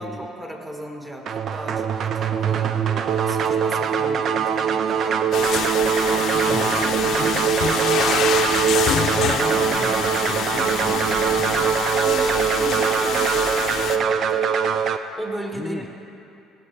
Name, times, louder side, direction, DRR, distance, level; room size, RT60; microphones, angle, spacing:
voice 1, 0.0-5.6 6.7-8.2 10.2-14.5 15.1-15.9, equal, 15° right, 1 dB, 1.6 m, -36 dB
sound 1, 1.3-15.0, right 7 dB, 55° right, 0.5 m, -22 dB
voice 2, 2.6-2.9 6.5-6.8 9.2-11.0 11.2-11.4 15.5-15.9, left 3 dB, 25° left, 2 dB, 0.7 m, -35 dB
sound 2, 5.3-14.0, left 7 dB, 65° left, 0.6 m, -26 dB
16.0 x 7.6 x 3.4 m, 2.6 s
supercardioid pair, 75°, 0 cm